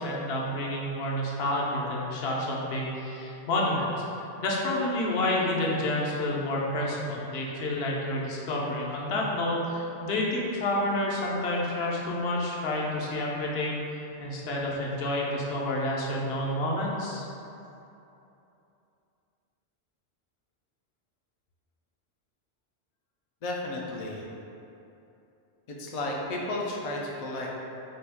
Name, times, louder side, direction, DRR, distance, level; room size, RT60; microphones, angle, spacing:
voice 1, 0.0-13.9 14.2-17.2, left 1 dB, 70° left, -3 dB, 0.8 m, -29 dB
voice 2, 23.4-24.2 25.8-27.6, left 2 dB, 55° left, -2 dB, 0.4 m, -33 dB
4.1 x 2.2 x 3.4 m, 2.9 s
omnidirectional pair, 1.1 m